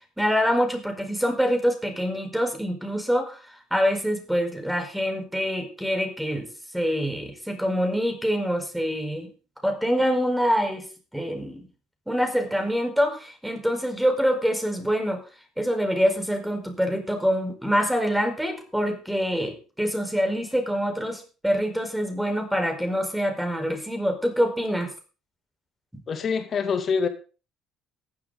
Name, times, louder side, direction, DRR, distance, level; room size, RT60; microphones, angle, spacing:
voice 1, 0.2-3.4 3.7-6.5 6.7-9.3 9.6-10.8 11.1-11.6 12.1-15.2 15.6-24.9, equal, 5° right, 5 dB, 4.7 m, -25 dB
voice 2, 26.1-27.1, left 5 dB, 40° left, 8 dB, 2.5 m, -25 dB
15.0 x 11.5 x 4.0 m, 0.35 s
figure-of-eight pair, 55°, 0 cm